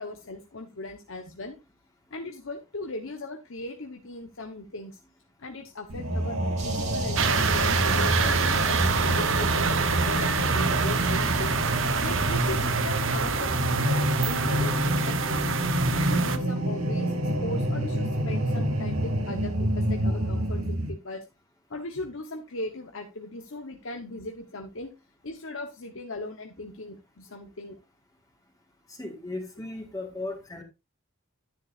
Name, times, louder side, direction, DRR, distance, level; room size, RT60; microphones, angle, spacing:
voice 1, 0.0-1.6 2.1-5.0 5.4-13.5 13.8-15.2 15.9-21.2 21.7-24.9 25.2-27.8, left 2 dB, 65° left, 4 dB, 1.1 m, -38 dB
sound 1, 5.9-20.9, right 1 dB, 90° right, 2.4 m, -27 dB
sound 2, 6.6-12.7, right 3 dB, 35° right, 2.4 m, -40 dB
sound 3, 7.1-16.4, right 6 dB, 65° right, 1.0 m, -27 dB
voice 2, 29.0-30.6, left 2 dB, 15° left, 2 dB, 1.8 m, -36 dB
10.5 x 9.9 x 2.5 m, 0.25 s
head